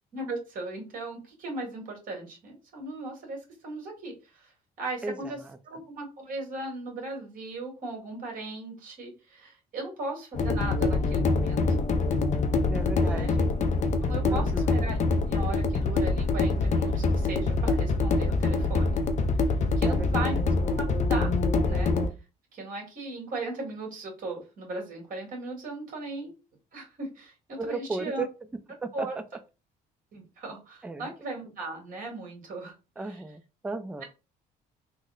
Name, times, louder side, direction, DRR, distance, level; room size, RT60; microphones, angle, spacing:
voice 1, 0.1-4.5 4.8-5.4 5.6-11.8 13.0-13.3 14.0-15.0 15.3-19.0 19.8-20.8 21.1-21.3 21.6-21.9 22.5-26.3 26.7-28.3 28.9-29.1 30.1-32.7 33.0-33.2, right 2 dB, 55° right, 1.8 m, -37 dB
voice 2, 5.0-5.6 12.7-13.5 14.2-14.8 19.8-20.4 27.6-29.2 30.8-31.1 33.0-34.0, right 3 dB, 5° right, 0.4 m, -36 dB
sound 1, 10.4-22.1, left 3 dB, 45° left, 0.5 m, -25 dB
3.7 x 2.1 x 3.7 m
cardioid pair, 110°, 17 cm